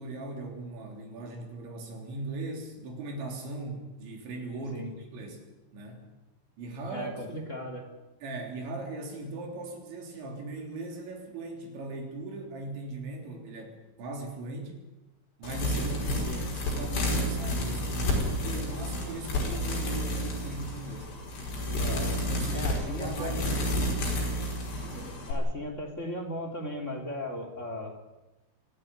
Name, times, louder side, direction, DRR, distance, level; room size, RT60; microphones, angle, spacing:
voice 1, 0.0-6.1 6.6-7.3 8.2-14.8 15.4-21.1 22.3-23.9 24.8-25.2, right 2 dB, 75° right, 2 dB, 5.9 m, -39 dB
voice 2, 6.9-7.9 16.3-16.4 21.8-22.2 22.5-23.4 25.3-27.9, left 1 dB, 20° left, 3 dB, 3.0 m, -37 dB
sound 1, 15.4-25.3, left 1 dB, 65° left, 7.4 m, -30 dB
25.0 x 15.0 x 9.6 m, 1.0 s
omnidirectional pair, 5.2 m